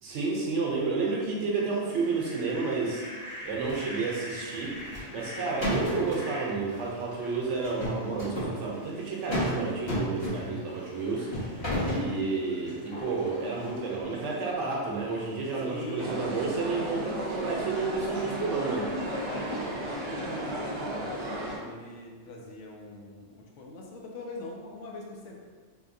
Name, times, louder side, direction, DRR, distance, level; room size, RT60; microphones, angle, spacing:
voice 1, 0.0-3.0 3.4-4.7 5.1-18.9, right 4 dB, 70° right, -3 dB, 0.9 m, -31 dB
Fowl, 1.8-20.0, equal, 45° left, 1.2 m, -46 dB
voice 2, 4.9-5.3 11.7-12.2 12.6-12.9 15.6-16.4 19.0-25.3, left 2 dB, 70° left, -1 dB, 0.9 m, -42 dB
sound 1, 4.9-5.3 5.6-6.1 7.6-8.6 9.3-9.6 9.9-10.6 11.3-12.1, equal, 25° left, 0.8 m, -30 dB
sound 2, 16.0-21.6, right 1 dB, 35° right, 0.4 m, -34 dB
3.4 x 2.8 x 2.6 m, 1.5 s
omnidirectional pair, 1.3 m